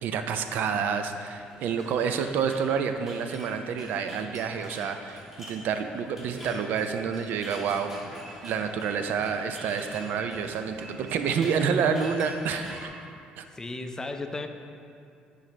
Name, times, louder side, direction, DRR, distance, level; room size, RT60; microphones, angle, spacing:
voice 1, 0.0-8.1 8.4-12.9 13.4-13.5, right 6 dB, 70° right, 7 dB, 0.4 m, -28 dB
sound 1, 1.3-12.9, equal, 10° right, 1.2 m, -46 dB
voice 2, 13.5-14.5, left 2 dB, 20° left, 6 dB, 0.4 m, -34 dB
9.1 x 3.9 x 3.2 m, 2.4 s
cardioid pair, 95°, 3 cm